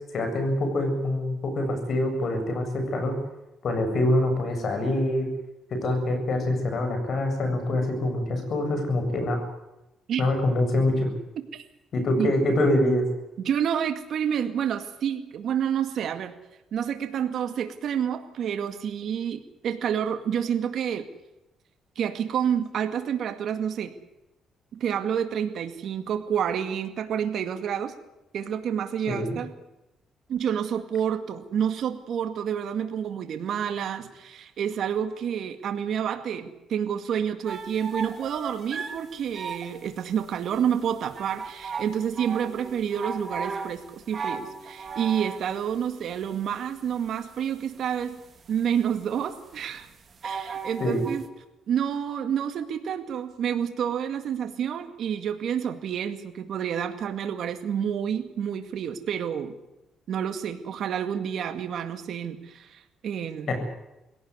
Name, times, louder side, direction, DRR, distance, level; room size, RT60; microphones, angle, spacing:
voice 1, 0.0-3.2 3.6-5.3 5.7-9.4 10.2-11.1 11.9-13.0 29.1-29.4 50.8-51.0 63.5-63.6, left 1 dB, 55° left, 6 dB, 7.8 m, -25 dB
voice 2, 13.4-16.4 16.7-21.1 22.0-23.9 24.7-27.9 28.3-29.5 30.3-48.2 48.5-49.9 50.2-51.2 51.7-59.5 60.1-63.5, right 8 dB, 70° right, 7 dB, 2.1 m, -29 dB
sound 1, 37.5-51.3, right 5 dB, 45° right, 3.5 m, -37 dB
22.0 x 17.5 x 9.7 m, 0.96 s
cardioid pair, 90°, 0 cm